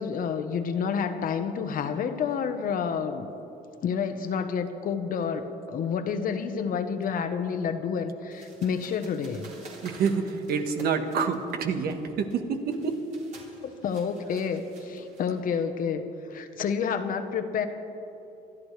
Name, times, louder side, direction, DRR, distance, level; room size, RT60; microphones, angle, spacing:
voice 1, 0.0-3.3 3.8-9.5 13.6-16.0 16.3-17.7, left 6 dB, 55° left, 8 dB, 1.1 m, -29 dB
sound 1, 8.3-15.6, right 3 dB, 45° right, 3.6 m, -51 dB
voice 2, 9.8-13.1, right 5 dB, 65° right, 6 dB, 1.4 m, -27 dB
27.0 x 12.0 x 3.3 m, 3.0 s
cardioid pair, 110°, 17 cm